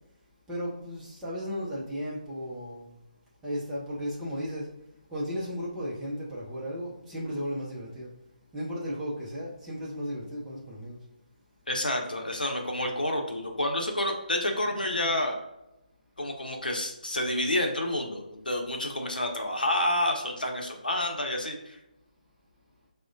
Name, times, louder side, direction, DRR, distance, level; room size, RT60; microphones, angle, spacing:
voice 1, 0.5-3.0 3.4-4.7 5.1-8.1 8.5-11.0, equal, 5° right, -7 dB, 0.6 m, -35 dB
voice 2, 11.7-15.4 16.2-21.8, left 1 dB, 70° left, 2 dB, 0.7 m, -29 dB
4.6 x 2.1 x 2.5 m, 0.93 s
figure-of-eight pair, 145°, 5 cm